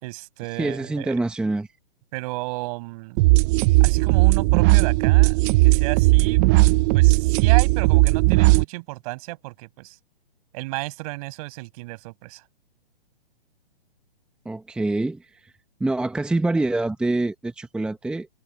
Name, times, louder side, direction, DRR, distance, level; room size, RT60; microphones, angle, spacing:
voice 1, 0.0-1.2 2.1-3.2 3.8-6.4 6.9-10.0 10.5-12.4, right 24 dB, 40° right, 6.3 m, -33 dB
voice 2, 0.6-1.7 14.4-15.5 15.8-18.3, right 2 dB, 5° right, 1.0 m, -25 dB
sound 1, 3.2-8.6, right 22 dB, 20° right, 0.5 m, -17 dB
hypercardioid pair, 145°, 30 cm